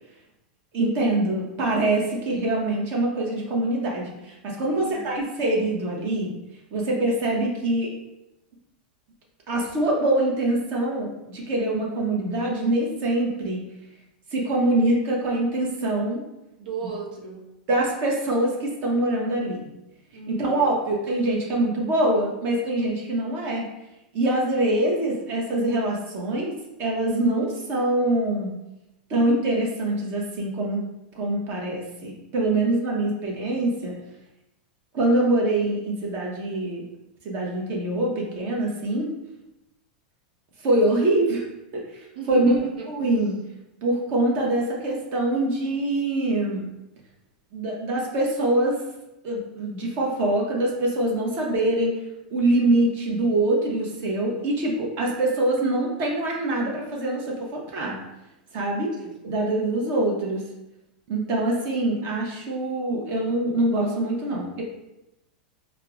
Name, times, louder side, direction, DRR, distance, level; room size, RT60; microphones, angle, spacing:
voice 1, 0.7-6.3 6.7-7.9 9.5-13.6 14.3-16.2 17.7-19.6 20.3-23.7 24.1-26.5 26.8-28.5 29.1-30.8 31.1-33.9 34.9-36.8 37.2-39.1 40.6-41.4 41.7-42.5 42.9-43.3 43.8-46.6 47.5-48.8 49.2-52.0 52.3-58.0 58.5-58.9 59.2-60.4 61.1-64.6, right 1 dB, 45° right, -2 dB, 0.8 m, -24 dB
voice 2, 4.7-5.2 16.6-17.5 20.1-20.8 42.1-42.9 59.0-59.1, right 4 dB, 90° right, -2 dB, 0.8 m, -35 dB
4.5 x 2.0 x 2.3 m, 0.92 s
supercardioid pair, 125°, 5 cm